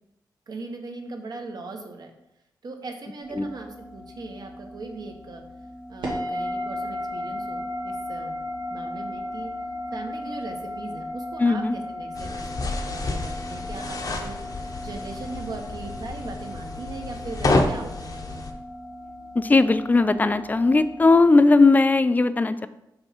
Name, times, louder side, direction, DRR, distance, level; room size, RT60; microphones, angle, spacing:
voice 1, 0.5-2.1 2.6-5.4 5.9-8.4 8.7-9.5 9.9-14.4 14.8-18.6, right 3 dB, 60° right, 4 dB, 1.0 m, -39 dB
sound 1, 3.2-21.2, left 1 dB, 80° right, 1.4 m, -36 dB
voice 2, 11.4-11.8 19.4-22.7, left 3 dB, 20° left, 13 dB, 0.3 m, -18 dB
sound 2, 12.1-18.5, left 2 dB, 50° left, 0.8 m, -29 dB
5.3 x 3.5 x 5.7 m, 0.86 s
wide cardioid pair, 100°, 8 cm